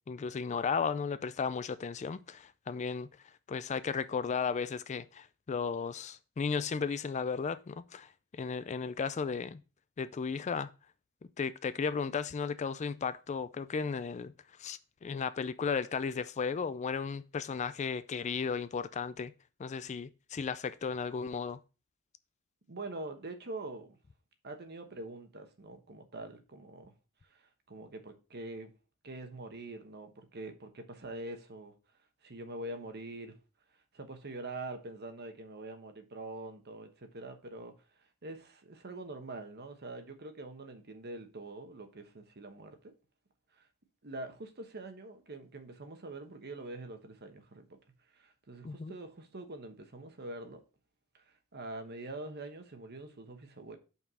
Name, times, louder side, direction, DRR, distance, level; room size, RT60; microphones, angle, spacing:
voice 1, 0.1-3.1 3.5-9.6 10.0-10.7 11.4-14.3 14.6-19.3 19.6-21.6 48.6-48.9, left 5 dB, 30° left, 0.3 m, -35 dB
voice 2, 22.7-24.0 24.4-26.9 27.3-28.7 29.0-31.7 32.2-33.3 33.9-37.7 38.2-42.9 43.6-43.7 44.0-47.6 48.1-50.6 51.1-51.2 51.5-53.8, right 2 dB, 50° right, 1.1 m, -44 dB
5.5 x 4.6 x 6.1 m
head